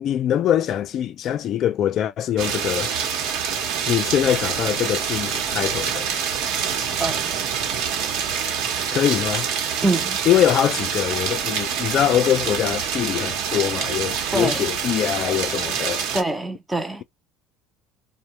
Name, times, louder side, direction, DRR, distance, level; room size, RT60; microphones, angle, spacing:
voice 1, 0.0-2.9 3.9-6.1 8.9-9.5 10.3-16.0, left 11 dB, 45° left, 0.4 m, -23 dB
sound 1, 2.4-16.2, right 7 dB, 70° right, 0.9 m, -26 dB
voice 2, 6.8-7.5 9.8-10.2 14.3-14.7 16.1-17.0, right 2 dB, 10° right, 0.5 m, -25 dB
2.7 x 2.1 x 3.0 m
cardioid pair, 140°, 0 cm